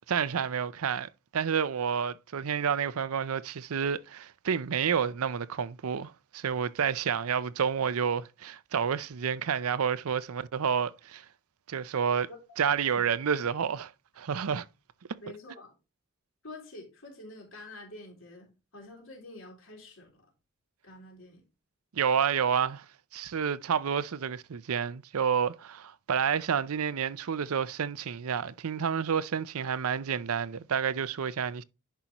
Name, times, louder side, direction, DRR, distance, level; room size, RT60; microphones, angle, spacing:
voice 1, 0.1-11.2 11.7-12.3 12.6-14.6 21.9-22.8 23.1-31.6, right 7 dB, 85° right, 0.5 m, -29 dB
voice 2, 15.2-15.7 16.4-20.3 20.8-21.4, left 2 dB, 70° left, 3.5 m, -47 dB
10.0 x 5.7 x 3.0 m
head